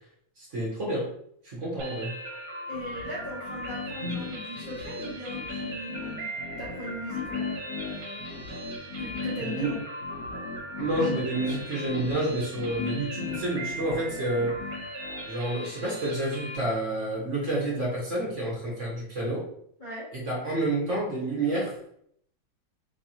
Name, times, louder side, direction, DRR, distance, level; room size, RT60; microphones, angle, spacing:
voice 1, 0.4-1.1 1.4-2.1 4.0-4.2 9.4-9.7 10.8-14.6 15.2-19.5 20.1-21.8, right 1 dB, 45° right, -5 dB, 1.2 m, -29 dB
sound 1, 1.8-16.6, right 1 dB, 65° right, 1.5 m, -39 dB
sound 2, 2.7-15.3, left 5 dB, 60° left, 1.2 m, -38 dB
voice 2, 2.7-6.3 6.6-8.3 9.0-9.8 19.8-20.1, left 1 dB, 40° left, -8 dB, 0.7 m, -39 dB
3.4 x 3.2 x 2.8 m, 0.67 s
omnidirectional pair, 2.2 m